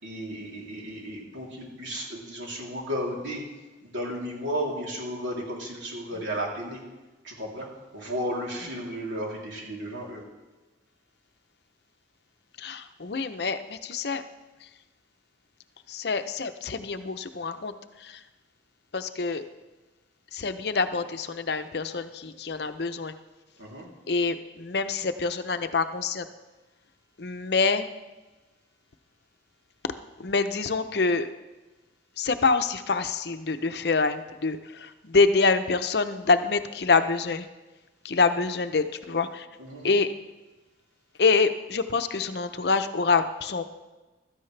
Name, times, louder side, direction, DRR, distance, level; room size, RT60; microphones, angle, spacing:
voice 1, 0.0-3.4 3.8-6.8 7.2-7.7 7.9-10.2 23.6-23.9 39.6-40.0, equal, 85° right, -3 dB, 3.2 m, -34 dB
voice 2, 12.6-14.2 15.9-17.7 18.0-18.2 18.9-19.4 20.3-23.1 24.1-26.3 27.2-27.9 30.2-31.3 32.2-37.5 38.0-39.5 39.8-40.1 41.2-43.6, left 4 dB, 60° left, 9 dB, 0.6 m, -26 dB
16.0 x 13.0 x 3.3 m, 1.2 s
head